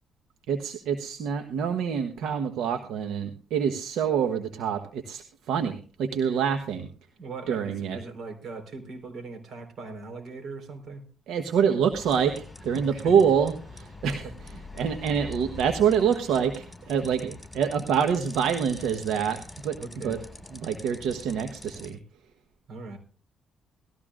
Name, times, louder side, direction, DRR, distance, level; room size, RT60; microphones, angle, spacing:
voice 1, 0.5-6.9 7.5-8.0 11.3-14.2 14.8-19.8 20.0-20.2 20.5-22.0, right 7 dB, 85° right, 6 dB, 1.2 m, -26 dB
voice 2, 7.2-11.0 12.7-13.1 14.1-14.3 14.8-14.9 17.0-17.1 19.8-20.2 22.7-23.0, right 4 dB, 60° right, 4 dB, 4.4 m, -40 dB
sound 1, 11.9-21.9, left 2 dB, 10° left, 7.0 m, -44 dB
19.0 x 14.0 x 2.5 m, 0.38 s
cardioid pair, 90°, 0 cm